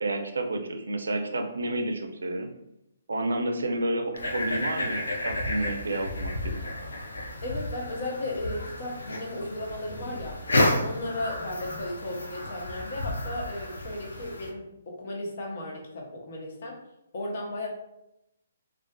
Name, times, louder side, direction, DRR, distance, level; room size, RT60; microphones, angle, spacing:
voice 1, 0.0-2.5 3.1-6.6, right 1 dB, 85° right, 5 dB, 0.4 m, -30 dB
sound 1, 4.1-14.5, left 1 dB, 90° left, 0.5 m, -31 dB
voice 2, 7.4-10.4 10.8-16.8 17.1-17.7, left 1 dB, 55° left, -1 dB, 0.7 m, -35 dB
sound 2, 9.7-12.2, equal, 10° left, 0.4 m, -45 dB
2.4 x 2.3 x 2.2 m, 0.85 s
hypercardioid pair, 150°, 0 cm